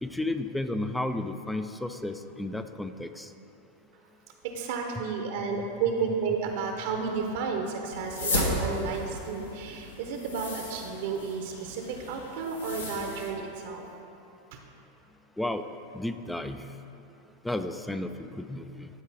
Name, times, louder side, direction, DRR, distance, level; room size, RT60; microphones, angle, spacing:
voice 1, 0.0-3.3 5.0-5.1 15.4-15.6 15.9-16.7 17.4-18.9, left 1 dB, 5° left, 9 dB, 0.3 m, -33 dB
voice 2, 4.4-13.8, right 5 dB, 60° right, 2 dB, 0.7 m, -32 dB
sound 1, 7.9-13.3, left 1 dB, 80° left, 1.0 m, -34 dB
12.0 x 4.5 x 3.4 m, 2.8 s
hypercardioid pair, 90°, 0 cm